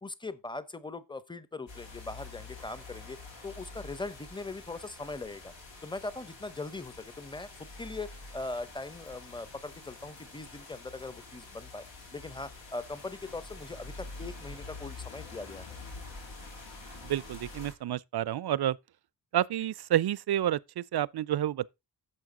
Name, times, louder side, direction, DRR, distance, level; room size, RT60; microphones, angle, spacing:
voice 1, 0.0-3.2 3.4-5.5 5.8-11.8 12.1-15.7, left 3 dB, 10° left, 0.7 m, -40 dB
sound 1, 1.7-17.7, left 3 dB, 90° left, 3.4 m, -47 dB
voice 2, 17.0-18.8 19.3-21.7, right 12 dB, 60° right, 0.5 m, -29 dB
11.0 x 7.2 x 3.7 m
wide cardioid pair, 145°, 44 cm